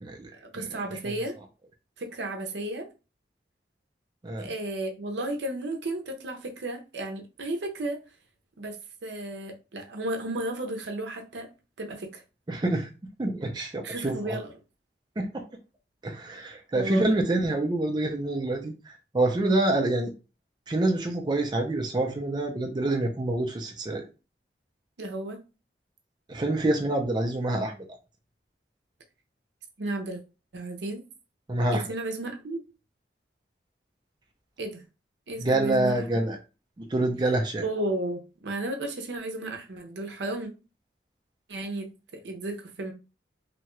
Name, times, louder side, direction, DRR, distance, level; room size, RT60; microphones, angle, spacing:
voice 1, 0.4-1.4 2.0-2.9 4.4-8.0 8.6-11.5 11.8-12.2 13.8-14.5 16.7-17.2 25.0-25.4 29.8-30.2 30.5-31.0 31.7-32.6 34.6-34.8 35.3-36.0 37.6-40.5 41.5-42.9, right 2 dB, 80° right, 0.6 m, -33 dB
voice 2, 12.5-12.9 13.2-14.4 15.2-15.4 16.0-20.1 20.7-24.0 26.3-27.8 31.5-31.8 35.4-36.4 36.8-37.6, right 2 dB, 25° right, 0.4 m, -27 dB
2.8 x 2.2 x 3.0 m
head